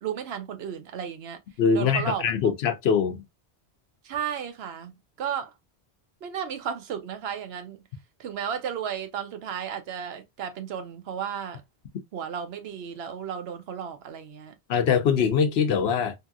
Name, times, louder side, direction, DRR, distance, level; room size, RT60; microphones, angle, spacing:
voice 1, 0.0-1.4 1.7-2.3 4.0-5.5 6.2-7.8 8.2-11.6 12.1-14.5, right 8 dB, 75° right, 0.8 m, -34 dB
voice 2, 1.6-3.2 14.7-16.1, left 6 dB, 75° left, 0.8 m, -23 dB
2.9 x 2.7 x 2.3 m
omnidirectional pair, 1.1 m